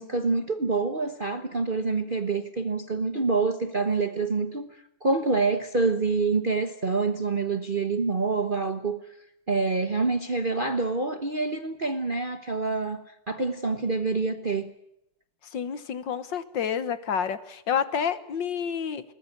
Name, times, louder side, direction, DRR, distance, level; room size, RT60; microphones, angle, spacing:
voice 1, 0.0-9.0 9.5-14.7, right 3 dB, 35° right, 0.9 m, -27 dB
voice 2, 15.5-19.0, left 7 dB, 65° left, 1.8 m, -29 dB
21.5 x 19.5 x 9.2 m
omnidirectional pair, 2.3 m